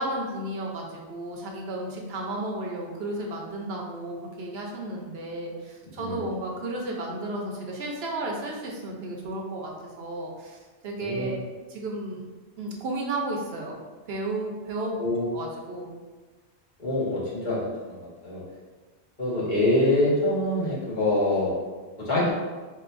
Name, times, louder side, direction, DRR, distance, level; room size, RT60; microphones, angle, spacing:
voice 1, 0.0-9.7 10.0-11.4 11.7-12.2 12.6-13.8 14.1-14.9 15.3-15.9 22.2-22.3, right 2 dB, 70° right, -1 dB, 0.8 m, -33 dB
voice 2, 11.0-11.4 14.8-15.3 16.8-18.4 19.2-21.5 22.0-22.3, left 1 dB, 45° left, -9 dB, 1.4 m, -25 dB
4.6 x 2.7 x 2.5 m, 1.4 s
omnidirectional pair, 1.1 m